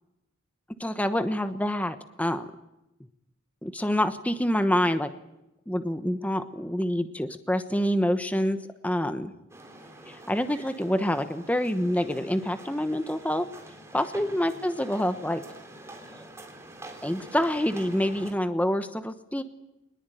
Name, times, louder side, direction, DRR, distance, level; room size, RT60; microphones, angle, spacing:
voice 1, 0.8-2.5 3.6-5.1 5.7-8.6 8.8-9.3 10.1-13.5 13.9-15.4 17.0-19.4, equal, 5° left, 9 dB, 1.1 m, -27 dB
sound 1, 9.5-18.3, right 1 dB, 15° right, 3.6 m, -46 dB
23.0 x 20.5 x 9.2 m, 0.89 s
head